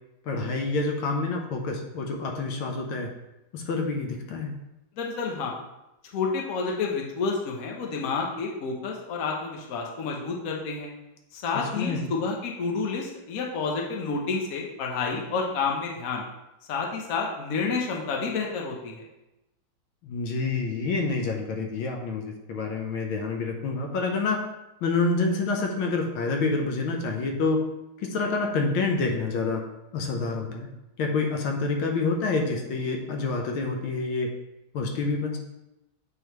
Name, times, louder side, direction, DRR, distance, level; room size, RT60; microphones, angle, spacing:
voice 1, 0.2-3.1 3.5-4.5 11.5-12.1 20.0-24.4 24.8-27.7 28.0-29.6 29.9-30.7 31.0-34.3 34.7-35.4, left 3 dB, 90° left, 2 dB, 1.6 m, -27 dB
voice 2, 5.0-5.6 6.1-10.9 11.3-16.2 16.7-19.0, left 4 dB, 55° left, 0 dB, 1.1 m, -29 dB
8.2 x 3.9 x 3.0 m, 0.93 s
omnidirectional pair, 2.2 m